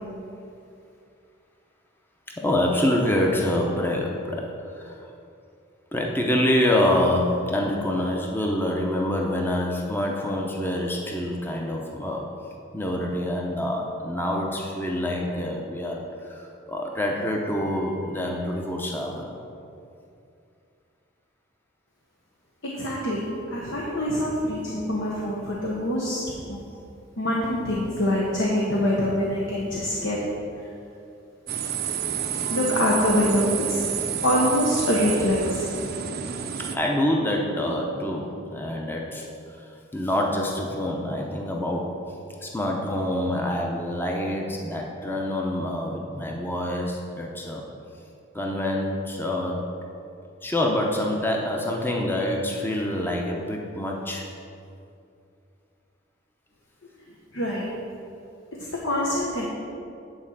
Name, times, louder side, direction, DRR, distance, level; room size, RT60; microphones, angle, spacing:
voice 1, 2.4-5.0 5.9-12.3 12.7-19.4 36.6-42.0 42.4-47.6 48.3-49.7 50.4-54.3, left 1 dB, 10° left, 0 dB, 0.7 m, -26 dB
voice 2, 22.6-23.2 23.5-26.2 26.5-26.6 27.2-30.2 32.5-33.8 34.2-35.7 57.3-57.7 58.7-59.5, left 1 dB, 70° left, -4 dB, 1.2 m, -24 dB
sound 1, 31.5-36.8, right 8 dB, 50° right, 0.6 m, -29 dB
8.9 x 4.3 x 7.3 m, 2.6 s
head